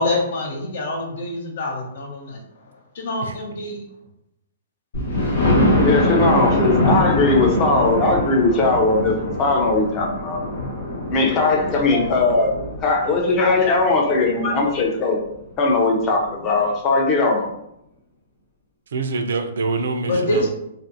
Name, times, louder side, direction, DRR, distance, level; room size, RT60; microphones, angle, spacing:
voice 1, 0.0-3.9 20.1-20.5, left 1 dB, 65° left, 1 dB, 0.7 m, -26 dB
Thunder, 4.9-14.7 15.2-15.3 15.7-15.8 16.1-16.2, left 1 dB, 85° left, 1.0 m, -23 dB
voice 2, 5.7-10.4 11.1-12.5 12.8-15.2 15.6-17.5, left 3 dB, 25° left, 1 dB, 0.5 m, -19 dB
voice 3, 18.9-20.5, right 3 dB, 80° right, 6 dB, 0.4 m, -25 dB
2.5 x 2.4 x 2.6 m, 0.82 s
hypercardioid pair, 160°, 0 cm